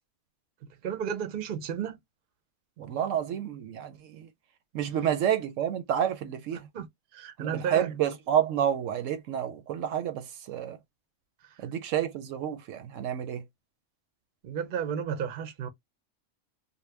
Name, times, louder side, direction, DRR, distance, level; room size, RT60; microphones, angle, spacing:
voice 1, 0.6-2.0 6.7-6.9 7.1-7.9 11.4-11.6 14.4-15.7, right 8 dB, 50° right, 0.7 m, -33 dB
voice 2, 2.8-4.3 4.7-6.7 7.4-10.8 11.6-13.4, right 9 dB, 85° right, 1.0 m, -29 dB
2.7 x 2.2 x 3.3 m
omnidirectional pair, 1.3 m